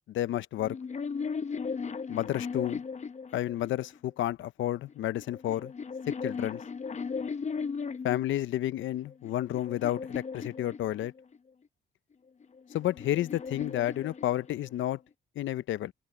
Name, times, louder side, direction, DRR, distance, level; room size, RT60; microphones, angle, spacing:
voice 1, 0.1-0.8 2.1-2.8 3.3-5.7 6.1-6.6 8.0-11.1 12.7-15.0 15.4-15.9, left 13 dB, 75° left, 0.8 m, -31 dB
sound 1, 0.6-4.0 4.9-8.3 8.9-11.4 12.4-14.8, left 5 dB, 35° left, 0.9 m, -37 dB
open air
cardioid pair, 90°, 20 cm